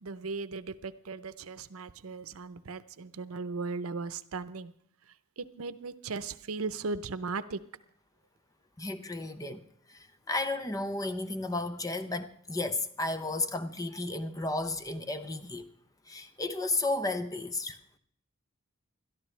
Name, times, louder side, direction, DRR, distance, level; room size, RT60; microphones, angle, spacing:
voice 1, 0.0-4.7 5.4-7.6, right 4 dB, 85° right, 0.7 m, -37 dB
voice 2, 8.8-15.7 16.1-17.8, left 2 dB, 15° left, 0.7 m, -33 dB
21.5 x 13.0 x 3.3 m
head